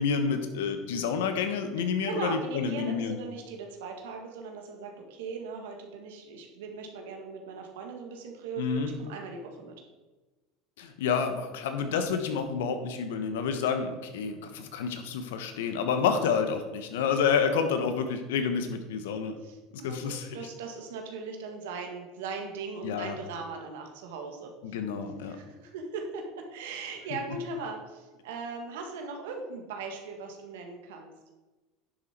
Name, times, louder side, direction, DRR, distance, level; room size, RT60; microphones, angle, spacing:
voice 1, 0.0-3.2 8.6-8.9 10.8-19.3 19.8-20.3 22.8-23.2 24.6-25.4, left 6 dB, 80° left, 8 dB, 1.2 m, -29 dB
voice 2, 2.1-9.7 19.4-24.5 25.2-31.1, right 4 dB, 80° right, 3 dB, 1.8 m, -39 dB
10.5 x 7.4 x 4.5 m, 1.2 s
hypercardioid pair, 95°, 0 cm